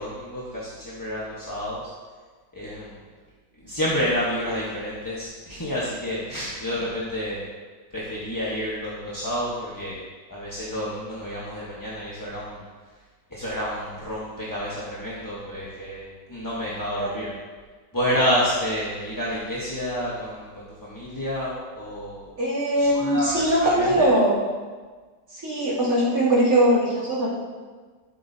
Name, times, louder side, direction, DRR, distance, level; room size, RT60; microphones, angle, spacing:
voice 1, 0.0-1.8 2.5-3.0 3.6-7.5 7.9-10.0 10.3-12.6 13.3-17.3 17.9-22.3 22.8-24.1, equal, 15° left, -7 dB, 1.0 m, -29 dB
voice 2, 22.4-24.3 25.3-27.3, right 1 dB, 50° right, -9 dB, 3.3 m, -21 dB
12.5 x 7.4 x 2.8 m, 1.4 s
omnidirectional pair, 1.9 m